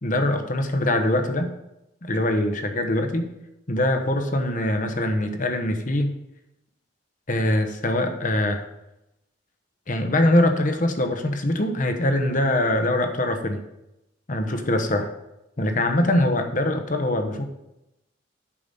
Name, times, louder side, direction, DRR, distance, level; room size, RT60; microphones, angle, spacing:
voice 1, 0.0-1.5 2.0-3.3 3.7-6.1 7.3-8.7 9.9-13.6 14.3-15.1 15.6-17.4, left 1 dB, 40° left, 6 dB, 1.0 m, -23 dB
8.6 x 5.9 x 5.4 m, 0.90 s
head